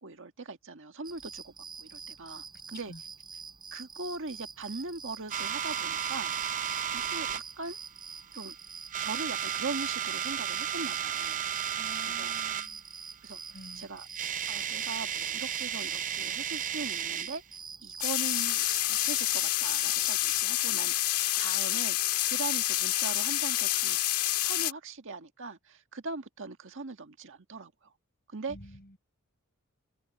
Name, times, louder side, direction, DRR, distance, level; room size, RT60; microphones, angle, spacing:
voice 1, 0.0-1.5 1.8-2.9 3.7-6.3 6.7-7.8 8.3-8.5 9.0-11.4 12.2-12.3 13.2-13.4 13.7-14.1 14.5-17.4 17.8-24.0 24.4-27.9 28.3-28.6, right 3 dB, 60° right, 1.7 m, -40 dB
sound 1, 1.0-20.4, right 5 dB, 20° right, 5.7 m, -46 dB
sound 2, 5.3-7.4 8.2-8.5 8.8-12.7 13.8-13.9 14.0-17.4, right 9 dB, 35° right, 0.7 m, -33 dB
voice 2, 11.8-12.9 13.5-13.9 28.5-29.0, left 1 dB, 45° left, 5.8 m, -48 dB
sound 3, 18.0-24.7, left 14 dB, 90° left, 1.8 m, -28 dB
head